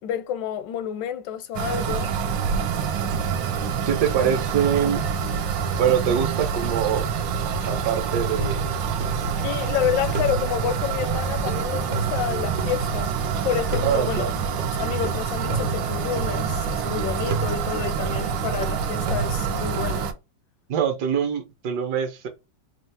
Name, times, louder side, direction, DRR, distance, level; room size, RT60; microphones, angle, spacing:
voice 1, 0.0-2.1 9.4-13.2 13.4-14.3 14.7-20.1, left 10 dB, 80° left, 1.2 m, -29 dB
sound 1, 1.5-20.1, right 6 dB, 90° right, 1.4 m, -26 dB
voice 2, 3.9-5.0 5.8-7.1 7.6-8.7 13.8-14.3 18.2-18.3 20.7-22.3, right 8 dB, 65° right, 1.4 m, -24 dB
sound 2, 8.4-9.7 10.1-13.3 13.7-16.9 17.3-19.9, right 2 dB, 50° right, 0.7 m, -34 dB
4.5 x 2.4 x 3.3 m
omnidirectional pair, 1.9 m